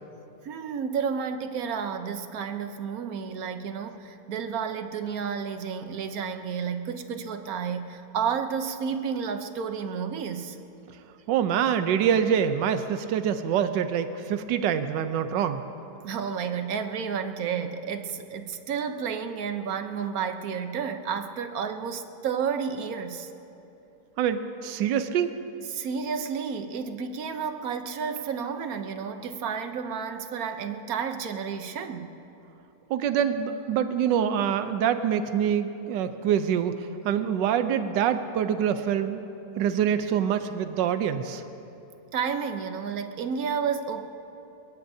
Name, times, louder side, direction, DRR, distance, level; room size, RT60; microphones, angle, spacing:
voice 1, 0.4-10.6 16.0-23.3 25.7-32.1 42.1-44.1, right 6 dB, 60° right, 8 dB, 1.2 m, -31 dB
voice 2, 11.3-15.6 24.2-25.3 32.9-39.2 39.6-41.4, right 8 dB, 85° right, 9 dB, 1.3 m, -25 dB
22.5 x 21.5 x 2.7 m, 3.0 s
omnidirectional pair, 1.9 m